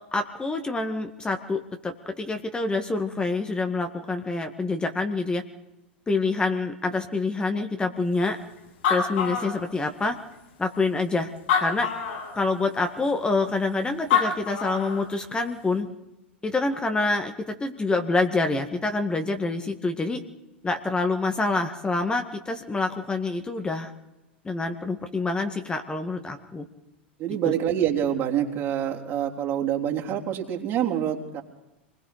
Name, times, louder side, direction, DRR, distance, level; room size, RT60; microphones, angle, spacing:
voice 1, 0.1-5.4 6.1-8.4 8.9-10.2 10.6-11.3 11.6-11.9 12.3-15.9 16.4-20.2 20.6-23.9 24.4-26.7 27.4-27.5, left 3 dB, 15° left, 6 dB, 1.8 m, -26 dB
Animal, 8.4-8.5 8.7-10.1 10.7-10.8 11.4-12.4 13.8-13.9 14.1-15.1, left 7 dB, 65° left, 7.7 m, -25 dB
voice 2, 27.2-31.4, right 10 dB, 40° right, 0 dB, 3.4 m, -26 dB
27.5 x 21.0 x 5.1 m, 0.94 s
figure-of-eight pair, 90°, 6 cm